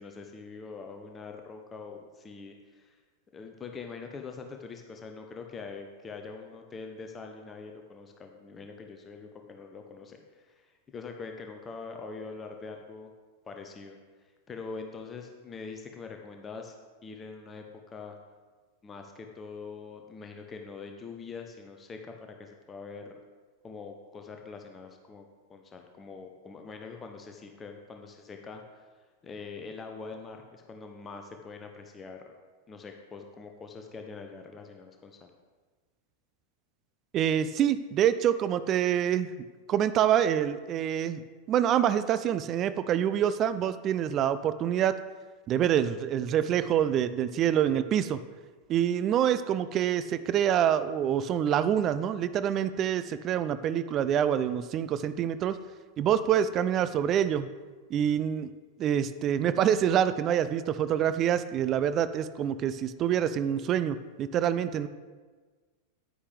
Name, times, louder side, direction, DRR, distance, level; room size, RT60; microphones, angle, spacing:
voice 1, 0.0-3.0 3.3-13.1 13.4-16.8 17.0-18.1 18.8-22.1 22.4-23.2 23.6-28.9 29.2-32.2 32.7-35.3, left 4 dB, 20° left, 4 dB, 0.8 m, -44 dB
voice 2, 37.1-39.3 39.7-41.2 41.5-45.0 45.5-48.2 48.7-55.6 56.0-57.5 57.9-58.5 58.8-64.9, right 9 dB, 30° right, 13 dB, 0.4 m, -26 dB
10.0 x 9.7 x 3.4 m, 1.4 s
figure-of-eight pair, 90°, 0 cm